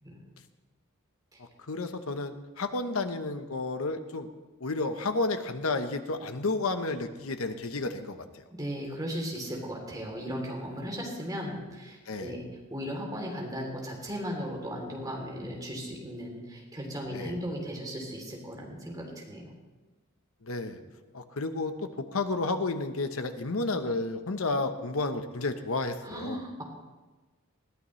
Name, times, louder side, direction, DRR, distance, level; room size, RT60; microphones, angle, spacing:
voice 1, 1.4-4.3 4.6-8.2 12.1-12.3 15.4-15.5 17.1-17.4 20.4-20.8 21.1-26.4, left 3 dB, 70° left, 8 dB, 1.0 m, -31 dB
voice 2, 8.5-12.4 12.7-19.5 26.0-26.6, equal, 15° right, -1 dB, 3.1 m, -36 dB
20.5 x 14.5 x 3.2 m, 1.2 s
head